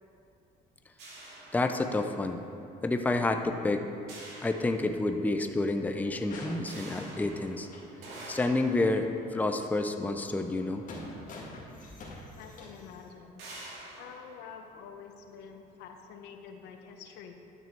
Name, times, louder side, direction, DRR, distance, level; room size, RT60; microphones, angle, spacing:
sound 1, 1.0-2.3 4.1-5.4 6.7-11.1 12.0-12.1 12.5-12.7 13.4-15.4, right 2 dB, 85° right, 2.4 m, -48 dB
voice 1, 1.5-2.4 2.8-3.9 4.4-7.7 8.3-10.8, left 2 dB, 10° left, 6 dB, 0.5 m, -29 dB
sound 2, 6.0-8.0 8.3-8.5 8.9-9.0 10.1-13.1, left 2 dB, 50° left, 1.9 m, -46 dB
voice 2, 12.4-13.4 14.0-17.3, left 6 dB, 90° left, 5 dB, 0.9 m, -47 dB
11.5 x 6.3 x 4.5 m, 2.6 s
cardioid pair, 110°, 17 cm